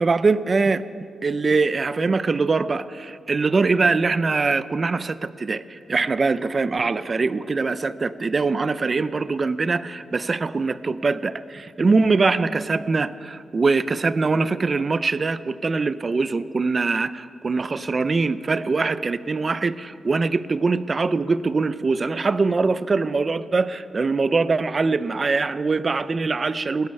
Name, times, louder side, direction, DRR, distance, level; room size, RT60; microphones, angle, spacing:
voice 1, 0.0-0.8 1.2-26.9, right 4 dB, 30° right, 15 dB, 0.4 m, -22 dB
18.0 x 8.6 x 9.2 m, 2.4 s
wide cardioid pair, 165°, 0 cm